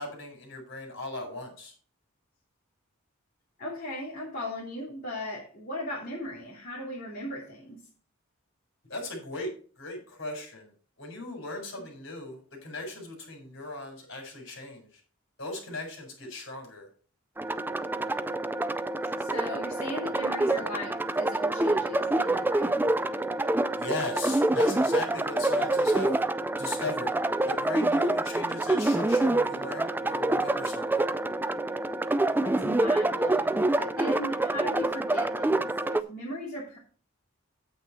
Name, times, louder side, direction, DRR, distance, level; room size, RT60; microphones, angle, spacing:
voice 1, 0.0-1.7 8.8-10.7 11.0-15.0 15.4-16.9 23.8-26.2 26.6-27.1 27.5-31.1, left 2 dB, 60° left, 3 dB, 4.6 m, -38 dB
voice 2, 3.6-7.8 11.7-11.8 19.2-22.8 32.4-36.8, left 1 dB, 45° left, -6 dB, 3.0 m, -38 dB
sound 1, 17.4-36.0, right 2 dB, 10° right, 0.3 m, -27 dB
8.8 x 8.6 x 4.3 m, 0.42 s
head